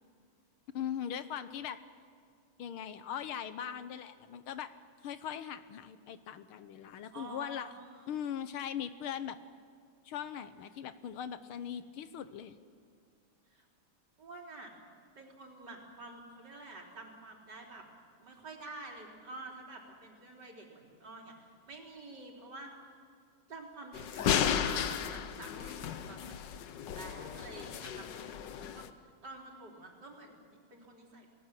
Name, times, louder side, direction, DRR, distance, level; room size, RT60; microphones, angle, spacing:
voice 1, 0.7-1.8 2.6-4.7 5.0-7.7 8.1-9.4 10.1-12.6, left 9 dB, 80° left, 12 dB, 1.8 m, -40 dB
voice 2, 7.1-8.1 13.5-13.7 14.2-14.7 15.1-17.8 18.2-22.7 23.5-31.3, right 2 dB, 50° right, -1 dB, 4.3 m, -49 dB
sound 1, 23.9-28.9, left 8 dB, 60° left, 1.4 m, -34 dB
29.5 x 19.5 x 7.6 m, 2.1 s
omnidirectional pair, 2.4 m